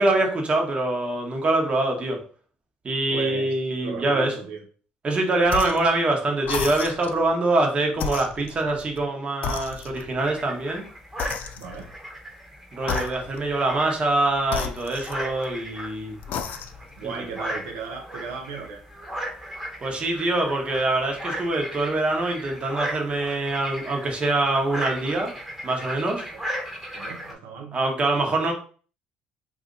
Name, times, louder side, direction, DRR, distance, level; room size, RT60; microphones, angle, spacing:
voice 1, 0.0-2.2 2.8-4.4 5.0-10.8 12.7-16.1 17.0-17.3 19.8-25.3 25.6-26.2 27.7-28.5, right 2 dB, 35° right, 2 dB, 1.0 m, -24 dB
voice 2, 3.1-3.5 3.8-4.6 11.5-11.9 17.0-18.8 26.3-26.4 26.9-27.8, right 6 dB, 85° right, 1 dB, 0.6 m, -36 dB
sound 1, 5.5-5.9 6.4-7.2 7.9-9.1 9.4-10.2 11.2-11.9 12.8-13.5 14.5-15.6 16.2-16.9, left 7 dB, 60° left, 0.4 m, -33 dB
sound 2, 10.2-27.3, equal, 10° right, 1.0 m, -36 dB
2.7 x 2.5 x 3.8 m, 0.41 s
supercardioid pair, 80°, 3 cm